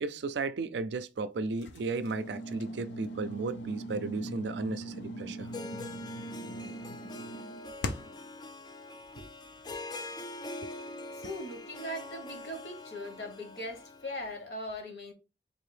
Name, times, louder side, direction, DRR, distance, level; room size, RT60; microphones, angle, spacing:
voice 1, 0.0-5.5, right 3 dB, 70° right, 0.4 m, -34 dB
sound 1, 1.6-8.3, equal, 80° left, 0.5 m, -40 dB
Harp, 5.4-14.4, left 2 dB, 25° left, 0.3 m, -44 dB
voice 2, 11.1-15.1, left 1 dB, 65° left, 1.1 m, -40 dB
3.9 x 2.7 x 3.2 m
head